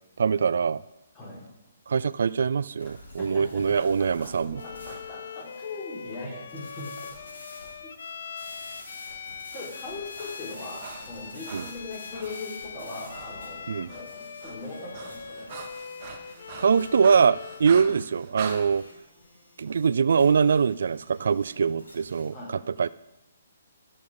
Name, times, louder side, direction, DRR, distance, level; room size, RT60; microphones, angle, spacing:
voice 1, 0.2-0.8 1.9-4.6 11.5-11.6 13.7-13.9 16.6-18.8 19.6-22.4 22.8-22.9, right 6 dB, 70° right, 18 dB, 0.3 m, -23 dB
sound 1, 2.8-22.3, left 1 dB, 90° left, 4.3 m, -50 dB
voice 2, 3.2-7.1 7.8-7.9 9.5-15.5 17.7-17.8 22.3-22.6, left 2 dB, 25° left, -4 dB, 4.7 m, -40 dB
Bowed string instrument, 4.5-17.7, left 6 dB, 65° left, 0.6 m, -42 dB
Breathing, 9.2-12.5 13.1-13.4 13.6-18.6, right 6 dB, 35° right, 1.4 m, -43 dB
14.5 x 7.1 x 5.2 m, 0.97 s
hypercardioid pair, 150°, 0 cm